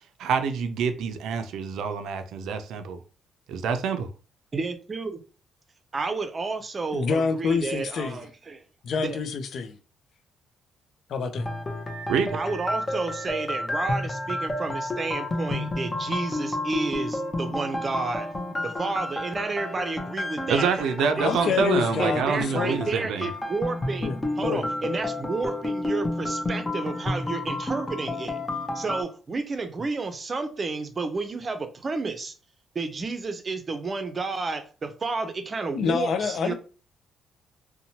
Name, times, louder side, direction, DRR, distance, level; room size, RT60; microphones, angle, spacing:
voice 1, 0.2-3.0 3.5-4.1 12.1-12.3 20.5-23.3, right 6 dB, 80° right, 0.4 m, -26 dB
voice 2, 4.5-5.2 5.9-8.6 9.0-9.2 12.3-18.3 18.6-20.7 21.2-21.6 22.0-28.4 28.7-32.3 32.7-36.5, right 3 dB, 35° right, 0.5 m, -31 dB
voice 3, 6.9-8.2 8.8-9.8 11.1-11.5 21.2-22.9 24.0-24.7 35.7-36.5, left 6 dB, 65° left, 0.5 m, -27 dB
sound 1, 11.3-29.0, left 1 dB, 20° left, 0.7 m, -31 dB
2.8 x 2.2 x 2.8 m
cardioid pair, 90°, 0 cm